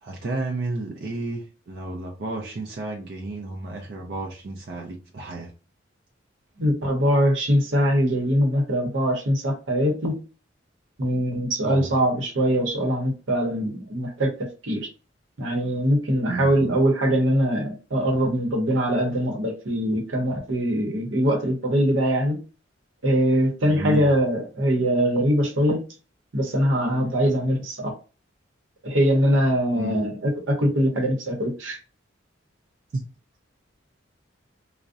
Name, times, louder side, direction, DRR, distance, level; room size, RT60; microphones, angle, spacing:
voice 1, 0.0-5.5 11.6-11.9 16.3-16.8 23.6-24.1 29.8-30.0 32.9-33.0, right 3 dB, 55° right, 0.4 m, -32 dB
voice 2, 6.6-10.2 11.0-14.9 15.4-22.4 23.0-25.8 26.3-27.9 28.8-31.8, equal, 85° right, 0.8 m, -22 dB
2.5 x 2.0 x 2.4 m
head